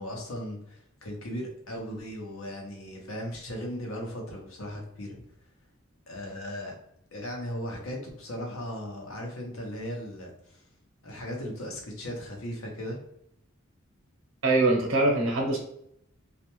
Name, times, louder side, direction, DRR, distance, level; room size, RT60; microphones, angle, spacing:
voice 1, 0.0-5.2 6.1-6.7 7.1-10.3 11.0-13.0, equal, 90° left, 1 dB, 0.8 m, -37 dB
voice 2, 14.4-15.6, right 2 dB, 70° right, 0 dB, 0.8 m, -23 dB
2.4 x 2.1 x 3.0 m, 0.74 s
head